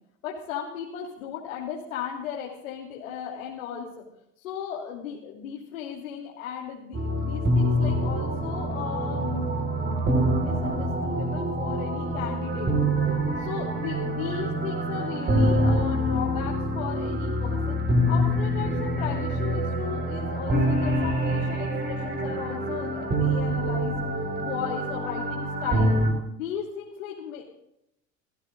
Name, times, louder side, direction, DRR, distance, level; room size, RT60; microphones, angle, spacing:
voice 1, 0.2-4.0 4.4-12.7 13.4-17.7 18.1-25.9 26.3-27.4, left 8 dB, 75° left, -2 dB, 3.1 m, -36 dB
sound 1, 6.9-26.1, right 1 dB, 25° right, 4.7 m, -26 dB
28.5 x 16.0 x 2.5 m, 0.81 s
hypercardioid pair, 80°, 40 cm